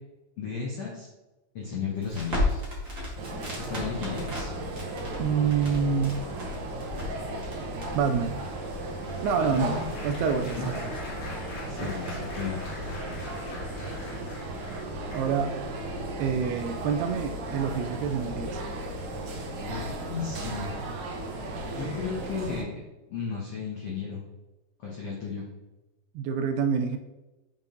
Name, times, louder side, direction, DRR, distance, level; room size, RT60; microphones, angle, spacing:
voice 1, 0.4-1.1 1.5-2.6 3.7-4.5 9.4-10.0 10.6-10.7 11.6-12.6 19.6-20.8 21.8-22.7 23.1-24.2 24.8-25.5, left 5 dB, 85° left, -4 dB, 1.3 m, -34 dB
Crackle, 2.0-12.5, left 2 dB, 30° right, 1.6 m, -36 dB
sound 1, 3.2-22.6, right 1 dB, 65° right, 2.1 m, -35 dB
voice 2, 5.2-6.2 7.9-8.3 9.2-10.8 11.8-11.9 15.1-15.6 16.2-18.6 26.2-27.0, right 6 dB, 80° right, 7 dB, 2.4 m, -27 dB
Applause, 7.7-15.6 16.3-16.5 16.8-17.0, left 3 dB, 55° left, 2.7 m, -45 dB
7.3 x 5.5 x 3.9 m, 1.0 s
omnidirectional pair, 4.9 m